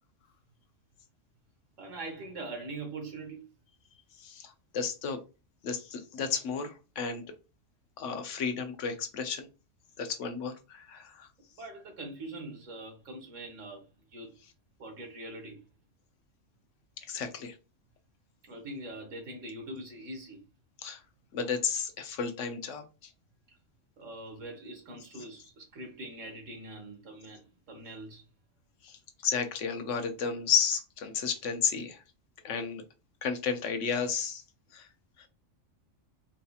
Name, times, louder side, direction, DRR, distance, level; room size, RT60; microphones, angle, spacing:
voice 1, 1.8-3.4 11.6-13.8 14.1-14.3 14.8-15.6 18.4-20.4 24.0-28.2, right 2 dB, 70° right, 1.4 m, -43 dB
voice 2, 4.2-5.2 5.6-7.2 8.0-9.5 10.0-11.3 17.1-17.5 20.8-21.0 21.3-23.1 28.8-32.0 32.4-32.8 33.2-34.4 34.7-34.9 35.2-35.3, left 6 dB, 70° left, 0.9 m, -32 dB
4.2 x 2.7 x 2.3 m
omnidirectional pair, 1.3 m